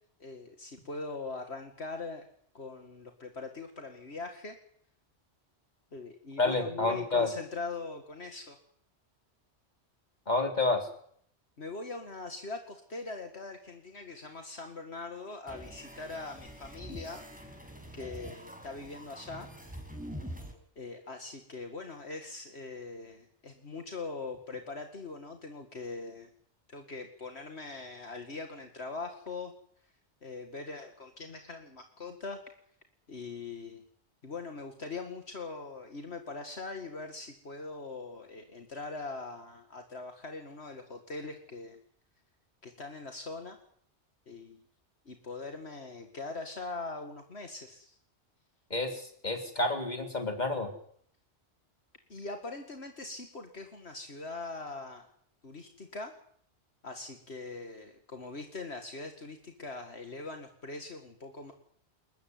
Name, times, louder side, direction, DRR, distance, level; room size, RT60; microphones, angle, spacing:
voice 1, 0.2-2.3 2.5-4.6 5.9-8.6 11.6-17.2 17.9-19.5 20.8-26.3 26.7-29.5 30.2-32.4 33.1-33.8 34.2-41.8 42.6-43.6 44.3-44.6 45.1-48.0 52.1-55.1 55.4-56.1 56.8-61.5, left 3 dB, 65° left, 5 dB, 2.4 m, -41 dB
voice 2, 6.4-7.3 10.3-10.9 48.7-50.7, left 2 dB, 40° left, 5 dB, 3.9 m, -29 dB
sound 1, 15.5-20.5, equal, 5° right, 5.9 m, -45 dB
28.5 x 14.5 x 9.6 m, 0.63 s
omnidirectional pair, 1.2 m